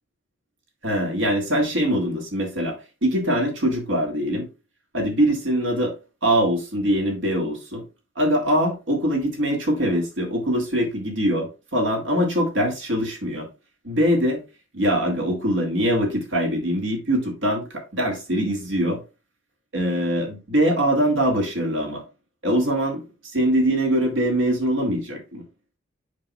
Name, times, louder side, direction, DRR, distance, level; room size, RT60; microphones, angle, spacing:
voice 1, 0.8-4.5 4.9-5.9 6.2-7.8 8.2-13.5 13.8-14.4 14.7-19.0 19.7-22.0 22.4-23.0 23.3-25.4, equal, 65° right, 2.1 m, -23 dB
7.4 x 5.7 x 2.3 m
head